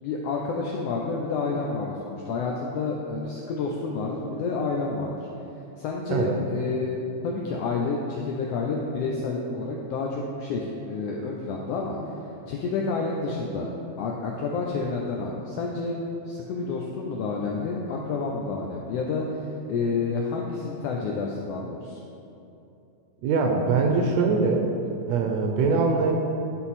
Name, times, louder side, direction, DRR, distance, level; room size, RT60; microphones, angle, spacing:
voice 1, 0.0-5.3 5.8-12.0 12.5-13.7 14.0-22.0, left 4 dB, 80° left, -1 dB, 1.4 m, -29 dB
voice 2, 6.1-6.4 23.2-24.7 25.1-26.1, right 4 dB, 80° right, 2 dB, 1.7 m, -22 dB
10.5 x 3.8 x 4.2 m, 2.8 s
omnidirectional pair, 3.3 m